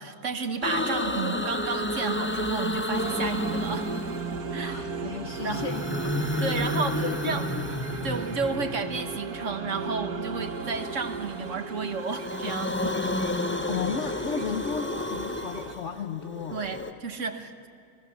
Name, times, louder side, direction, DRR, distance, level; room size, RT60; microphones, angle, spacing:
voice 1, 0.0-3.9 4.5-4.7 5.4-5.6 6.4-7.4 8.0-13.0 16.5-17.7, right 4 dB, 55° right, 7 dB, 1.6 m, -32 dB
sound 1, 0.6-4.6 5.3-9.0 10.4-11.6 11.9-16.9, left 1 dB, 10° left, 0.6 m, -31 dB
sound 2, 2.9-15.7, right 4 dB, 85° right, 1.8 m, -36 dB
voice 2, 4.5-6.7 7.0-7.6 13.7-16.6, left 6 dB, 55° left, 6 dB, 1.1 m, -35 dB
29.5 x 19.0 x 7.1 m, 2.5 s
omnidirectional pair, 1.6 m